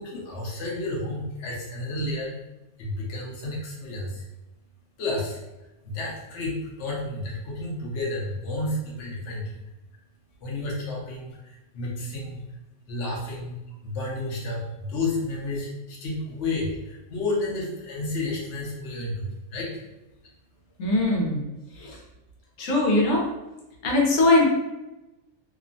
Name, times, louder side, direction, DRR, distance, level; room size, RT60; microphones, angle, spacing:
voice 1, 0.0-20.9, left 2 dB, 60° left, -4 dB, 0.9 m, -32 dB
voice 2, 20.8-21.4 21.8-22.0 22.6-23.2 23.8-24.4, left 2 dB, 85° left, -2 dB, 1.2 m, -21 dB
2.9 x 2.1 x 2.5 m, 0.99 s
omnidirectional pair, 1.5 m